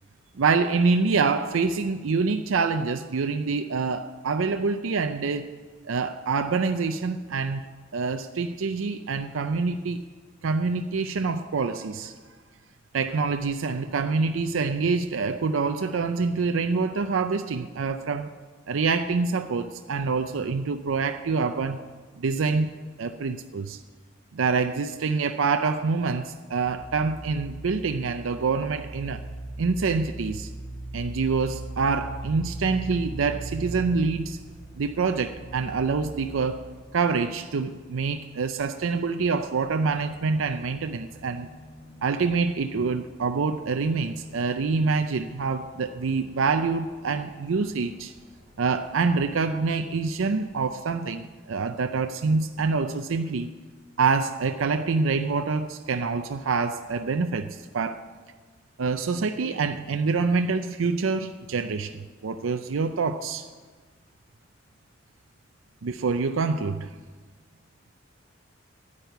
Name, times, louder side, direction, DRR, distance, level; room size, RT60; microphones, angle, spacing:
voice 1, 0.4-5.6 5.8-7.6 7.9-10.0 10.4-12.1 12.9-18.3 18.7-21.8 22.2-22.7 23.0-23.8 24.3-29.2 29.6-30.5 30.9-34.4 34.7-36.6 36.9-41.5 42.0-48.1 48.6-53.5 54.0-58.1 58.8-63.5 65.8-66.9, right 4 dB, 85° right, 8 dB, 0.5 m, -26 dB
sound 1, 26.6-36.6, right 2 dB, 80° left, 2.6 m, -39 dB
sound 2, 31.2-50.9, equal, 30° left, 5.3 m, -55 dB
10.5 x 9.7 x 8.0 m, 1.4 s
head